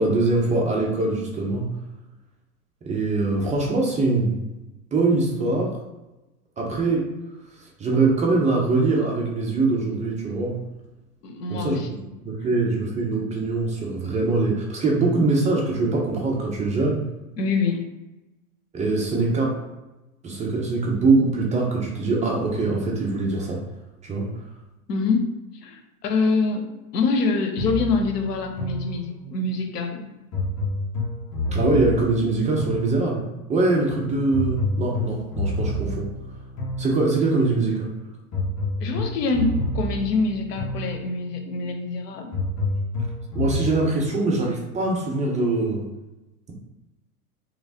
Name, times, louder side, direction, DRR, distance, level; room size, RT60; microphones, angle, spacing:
voice 1, 0.0-1.7 2.8-4.5 4.9-5.7 6.6-7.1 7.8-10.6 11.5-11.8 12.2-17.0 18.7-19.6 20.2-23.6 24.0-24.3 31.5-33.2 33.5-36.1 36.8-37.9 43.3-45.9, right 3 dB, 15° right, -1 dB, 0.6 m, -23 dB
voice 2, 11.2-12.1 17.4-17.8 24.9-25.4 25.6-26.7 26.9-30.1 38.8-42.3, left 4 dB, 85° left, 4 dB, 0.8 m, -25 dB
sound 1, 27.6-29.4 30.3-33.4 34.3-37.4 38.3-41.4 42.3-43.7, left 1 dB, 30° left, 1.3 m, -29 dB
3.2 x 3.1 x 2.7 m, 1.0 s
hypercardioid pair, 110°, 46 cm